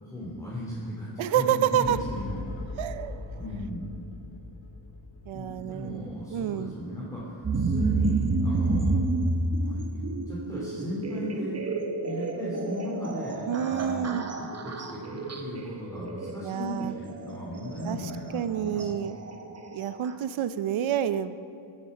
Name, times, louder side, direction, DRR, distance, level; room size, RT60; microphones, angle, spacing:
voice 1, 0.0-2.7 3.4-3.9 5.3-9.1 9.6-11.6 12.0-14.1 14.4-18.9, left 1 dB, 5° left, -7 dB, 2.4 m, -36 dB
voice 2, 1.2-2.0 2.8-3.3 5.3-6.7 13.4-14.3 16.4-16.9 17.9-18.0 18.3-19.2 19.7-21.4, right 10 dB, 80° right, 13 dB, 0.7 m, -28 dB
sound 1, 1.8-8.5, left 2 dB, 80° left, 2.1 m, -41 dB
sound 2, 7.4-20.1, right 3 dB, 35° right, 1.0 m, -30 dB
15.5 x 8.7 x 5.3 m, 2.5 s
wide cardioid pair, 115°, 47 cm